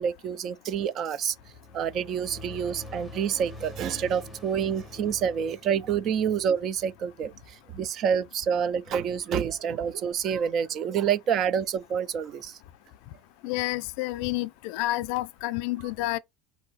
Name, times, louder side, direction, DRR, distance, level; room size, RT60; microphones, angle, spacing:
voice 1, 0.0-1.4 1.7-12.6, right 7 dB, 30° right, 0.3 m, -28 dB
sound 1, 1.2-7.9, left 2 dB, ahead, 0.6 m, -45 dB
voice 2, 13.4-16.2, left 18 dB, 60° left, 0.4 m, -29 dB
4.7 x 2.6 x 4.0 m
cardioid pair, 180°, 0 cm